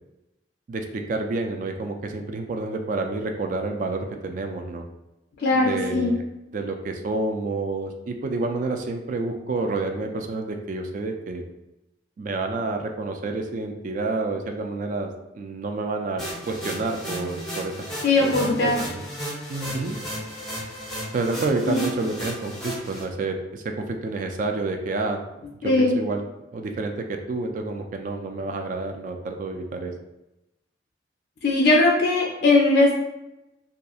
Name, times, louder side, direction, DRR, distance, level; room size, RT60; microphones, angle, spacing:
voice 1, 0.7-4.9 5.5-6.2 6.5-11.4 12.2-17.7 18.2-19.0 19.5-20.0 21.1-25.2 25.8-26.2 26.5-29.9, right 3 dB, 45° right, 4 dB, 0.3 m, -29 dB
voice 2, 5.4-6.2 18.0-18.8 21.7-21.8 25.6-26.0 31.4-32.9, left 2 dB, 55° left, -2 dB, 0.4 m, -19 dB
sound 1, 16.2-23.0, equal, 5° left, 0.6 m, -34 dB
2.8 x 2.3 x 2.3 m, 0.94 s
head